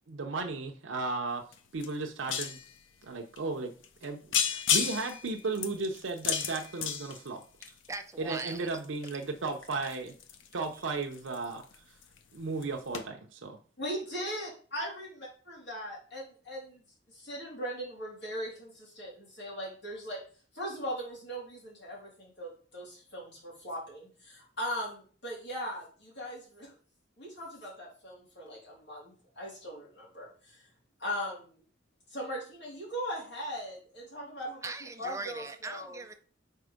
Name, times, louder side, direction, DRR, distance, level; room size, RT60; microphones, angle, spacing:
voice 1, 0.1-1.4 1.7-2.6 3.0-3.7 4.0-7.4 8.2-10.1 10.5-11.6 12.3-13.6, right 3 dB, 80° right, 0.7 m, -35 dB
sound 1, 1.5-1.6 1.8-2.7 3.4-3.5 3.8-4.1 4.3-7.9 8.4-11.7 12.0-12.4 12.6-12.7 12.9-13.0, left 7 dB, 90° left, 0.7 m, -32 dB
voice 2, 7.9-8.7 34.6-36.1, right 3 dB, 15° right, 0.5 m, -40 dB
voice 3, 13.8-20.2 20.5-26.7 27.2-30.6 31.0-31.5 32.1-36.0, equal, 65° left, 3.3 m, -39 dB
4.6 x 4.2 x 5.1 m
head